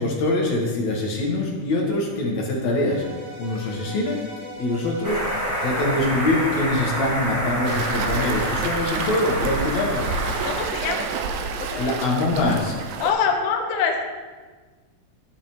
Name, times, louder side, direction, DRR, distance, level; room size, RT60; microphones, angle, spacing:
voice 1, 0.0-3.1 3.4-4.2 4.6-5.4 5.6-10.1 11.8-12.8, left 2 dB, 60° left, -2 dB, 2.5 m, -24 dB
sound 1, 2.7-8.0, left 1 dB, 60° right, 2.8 m, -41 dB
sound 2, 5.0-10.7, right 1 dB, 10° right, 0.7 m, -27 dB
Waves surf, 7.6-13.1, right 5 dB, 85° right, 1.7 m, -29 dB
voice 2, 10.4-11.1 11.6-12.0 13.0-14.0, left 6 dB, 80° left, 3 dB, 1.3 m, -24 dB
11.0 x 6.8 x 3.0 m, 1.4 s
omnidirectional pair, 3.8 m